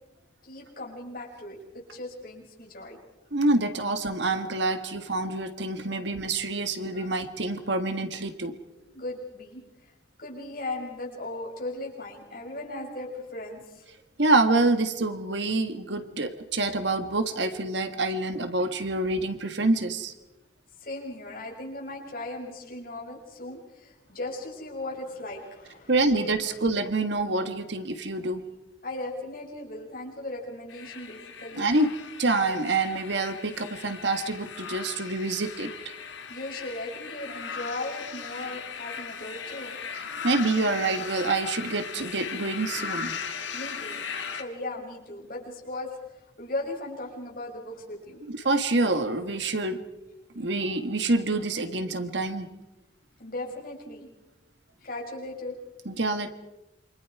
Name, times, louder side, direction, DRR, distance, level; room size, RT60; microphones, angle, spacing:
voice 1, 0.4-3.0 5.8-6.0 6.9-7.2 8.9-9.9 10.2-13.9 20.8-25.9 28.8-31.7 36.3-39.9 43.5-44.0 44.3-48.2 53.2-54.1 54.8-55.6, left 2 dB, 45° left, -1 dB, 6.3 m, -37 dB
voice 2, 3.3-8.5 14.2-20.1 25.9-28.4 31.6-31.9 32.2-35.7 39.9-43.1 48.3-49.9 50.3-52.5 55.8-56.3, right 2 dB, 70° right, 9 dB, 1.7 m, -26 dB
sound 1, 30.7-44.4, left 6 dB, 70° left, 1.8 m, -38 dB
28.0 x 25.5 x 4.8 m, 0.98 s
head